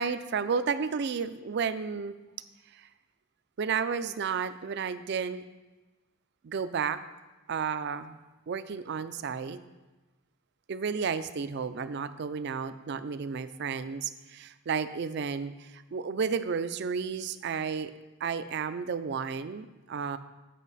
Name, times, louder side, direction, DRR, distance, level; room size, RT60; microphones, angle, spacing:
voice 1, 0.0-2.1 2.7-2.9 3.6-5.5 6.4-7.0 7.5-9.6 10.7-17.9 18.2-20.2, right 6 dB, 55° right, 13 dB, 0.4 m, -32 dB
9.2 x 5.6 x 4.1 m, 1.2 s
head